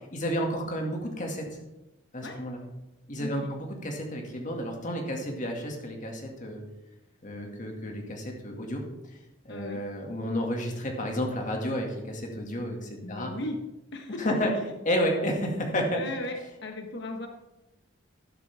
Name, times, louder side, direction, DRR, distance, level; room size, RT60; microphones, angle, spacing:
voice 1, 0.1-1.4 2.1-2.6 3.1-6.6 7.2-8.8 9.4-13.3 14.2-14.5 14.9-16.0, equal, 40° left, 1 dB, 2.2 m, -31 dB
voice 2, 3.2-3.5 9.5-9.8 13.0-13.6 13.9-14.2 16.0-17.3, left 1 dB, 60° left, 3 dB, 1.3 m, -36 dB
12.0 x 12.0 x 3.6 m, 0.99 s
head